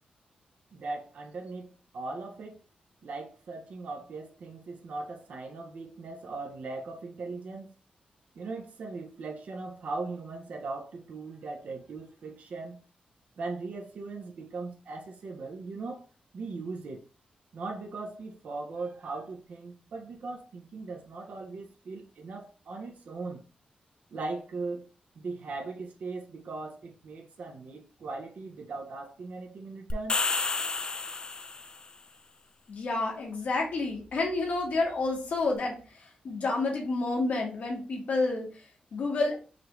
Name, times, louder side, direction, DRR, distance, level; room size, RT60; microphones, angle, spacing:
voice 1, 0.7-2.6 3.0-7.7 8.3-12.8 13.4-16.1 16.3-17.1 17.5-23.4 24.1-24.9 25.1-30.2, right 3 dB, 65° right, 0.6 m, -39 dB
sound 1, 29.9-31.8, left 3 dB, 30° left, 0.3 m, -30 dB
voice 2, 32.7-38.5 38.9-39.4, left 3 dB, 60° left, 1.3 m, -29 dB
4.9 x 2.4 x 3.0 m
wide cardioid pair, 155°, 3 cm